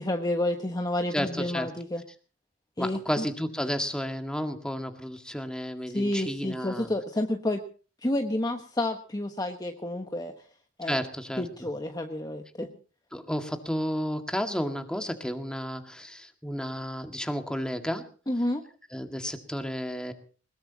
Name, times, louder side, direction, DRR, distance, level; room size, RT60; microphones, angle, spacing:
voice 1, 0.0-2.0 2.8-3.3 5.9-7.6 8.0-10.3 10.8-11.0 11.4-12.7 18.3-18.6, left 1 dB, 20° left, 4 dB, 1.3 m, -30 dB
voice 2, 1.1-1.7 2.8-6.9 10.8-11.4 13.1-18.1 18.9-20.1, equal, 5° left, 6 dB, 1.9 m, -32 dB
21.5 x 20.5 x 2.9 m, 0.37 s
head